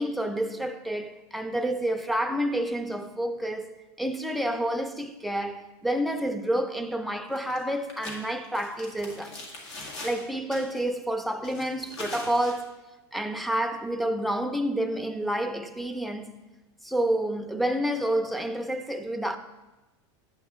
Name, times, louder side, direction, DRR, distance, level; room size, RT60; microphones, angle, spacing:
voice 1, 0.0-9.4 10.0-12.8 13.1-16.4 16.8-19.4, right 1 dB, ahead, 0.4 m, -29 dB
sound 1, 7.4-7.6 7.9-10.2 10.5-10.8 11.4-12.6, left 2 dB, 85° left, 1.8 m, -41 dB
8.5 x 8.1 x 3.6 m
supercardioid pair, 130°, 14 cm